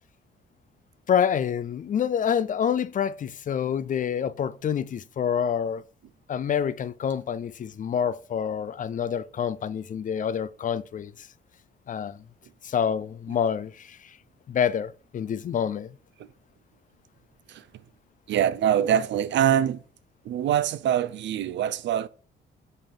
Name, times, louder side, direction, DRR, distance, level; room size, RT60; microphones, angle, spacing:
voice 1, 1.1-5.8 6.3-11.3 11.9-12.2 12.6-14.0 14.5-15.9, left 8 dB, 40° left, 0.4 m, -27 dB
voice 2, 18.3-19.8 20.3-22.1, right 10 dB, 65° right, 0.5 m, -24 dB
5.5 x 3.5 x 5.7 m
cardioid pair, 90°, 20 cm